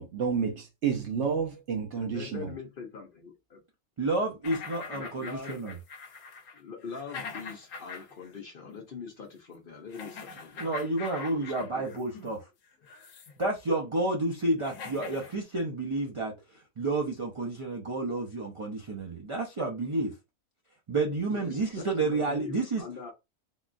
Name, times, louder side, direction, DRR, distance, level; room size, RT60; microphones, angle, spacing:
voice 1, 0.0-2.5, right 6 dB, 65° right, 0.9 m, -30 dB
voice 2, 1.9-3.6 4.9-5.6 6.5-10.7 11.3-12.0 21.3-23.1, left 5 dB, 55° left, 0.7 m, -43 dB
voice 3, 4.0-5.8 10.6-12.4 13.4-16.3 16.8-20.1 20.9-22.8, right 2 dB, 50° right, 0.4 m, -30 dB
sound 1, 4.4-8.3 8.6-8.8 9.9-12.3 12.8-13.4 14.2-14.3 14.6-15.4, left 5 dB, 75° left, 1.0 m, -43 dB
3.6 x 2.3 x 2.5 m
omnidirectional pair, 1.4 m